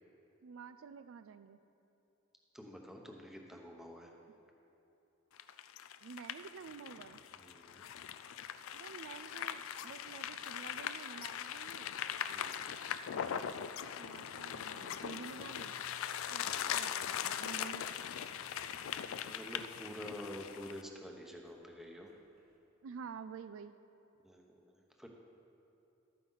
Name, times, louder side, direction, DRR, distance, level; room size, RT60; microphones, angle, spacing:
voice 1, 0.4-1.6 6.0-7.2 8.7-11.9 13.3-13.5 14.0-15.7 16.3-17.9 22.8-23.8, right 6 dB, 75° right, 12 dB, 0.4 m, -50 dB
voice 2, 2.5-4.1 7.4-7.9 12.3-12.8 16.4-16.9 18.8-22.1 24.2-25.1, equal, ahead, 1 dB, 0.9 m, -49 dB
sound 1, 5.4-20.8, left 9 dB, 75° left, 0.4 m, -41 dB
Applause, 14.2-22.6, right 1 dB, 45° right, 1.7 m, -64 dB
12.5 x 9.3 x 3.9 m, 3.0 s
head